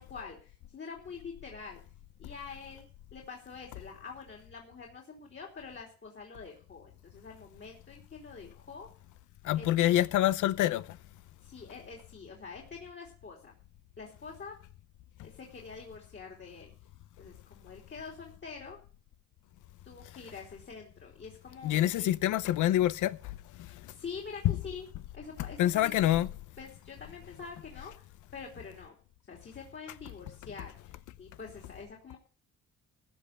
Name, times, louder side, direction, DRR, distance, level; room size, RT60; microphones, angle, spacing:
voice 1, 0.0-1.8 2.2-8.9 9.5-10.0 11.4-13.5 14.0-14.6 15.2-16.7 17.2-18.8 19.8-22.2 23.9-24.9 25.1-26.2 26.6-28.1 28.3-28.9 29.3-32.2, left 5 dB, 40° left, 3.4 m, -46 dB
voice 2, 9.4-11.0 21.6-23.9 24.4-24.6 25.6-26.3, left 13 dB, 85° left, 0.8 m, -27 dB
15.5 x 5.4 x 8.9 m
cardioid pair, 90°, 30 cm